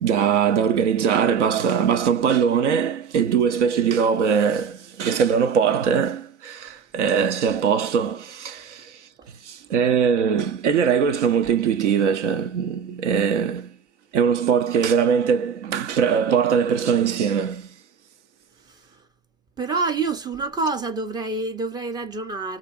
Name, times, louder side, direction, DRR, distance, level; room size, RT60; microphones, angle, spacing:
voice 1, 0.0-9.1 9.4-13.7 14.1-17.7, right 7 dB, 75° right, 0.6 m, -21 dB
voice 2, 19.6-22.6, right 3 dB, 10° right, 0.4 m, -27 dB
2.4 x 2.2 x 2.6 m
hypercardioid pair, 95°, 35 cm